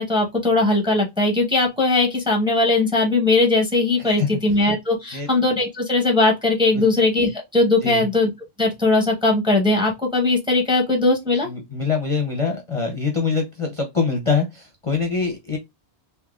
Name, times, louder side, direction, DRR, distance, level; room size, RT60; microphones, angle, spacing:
voice 1, 0.0-8.3 8.6-11.5, left 2 dB, 5° right, 0.7 m, -19 dB
voice 2, 11.4-15.6, left 5 dB, 35° left, 0.6 m, -24 dB
3.5 x 2.9 x 2.3 m
omnidirectional pair, 1.1 m